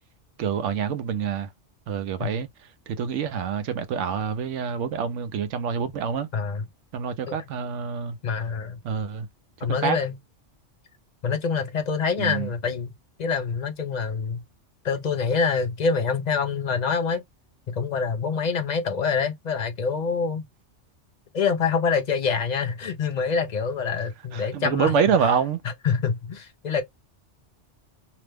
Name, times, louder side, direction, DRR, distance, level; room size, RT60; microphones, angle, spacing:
voice 1, 0.4-1.5 1.9-2.5 2.9-6.3 6.9-8.2 8.8-9.3 9.6-10.0 12.2-12.5 24.3-25.6, right 7 dB, 80° right, 0.9 m, -26 dB
voice 2, 6.3-6.6 7.3-7.4 8.2-8.8 9.6-10.2 11.2-12.9 13.2-14.4 14.8-17.2 17.7-20.4 21.3-24.9 25.8-26.8, left 5 dB, 55° left, 0.5 m, -26 dB
2.9 x 2.0 x 3.3 m
omnidirectional pair, 1.2 m